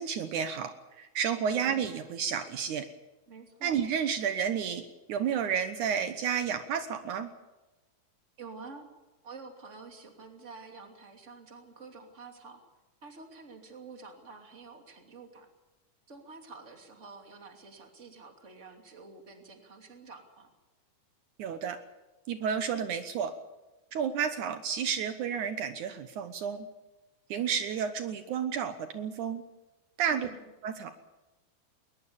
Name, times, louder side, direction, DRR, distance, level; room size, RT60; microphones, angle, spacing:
voice 1, 0.0-2.9 3.6-4.8 5.1-7.3 21.4-21.8 22.3-23.3 23.9-26.7 27.3-29.4 30.0-30.3 30.6-30.9, right 7 dB, 90° right, 8 dB, 1.7 m, -31 dB
voice 2, 3.3-3.8 8.4-8.9 9.2-12.6 13.0-15.5 16.1-20.5 30.1-30.5, right 4 dB, 20° right, 3 dB, 2.2 m, -48 dB
21.0 x 21.0 x 7.1 m, 1.1 s
omnidirectional pair, 5.1 m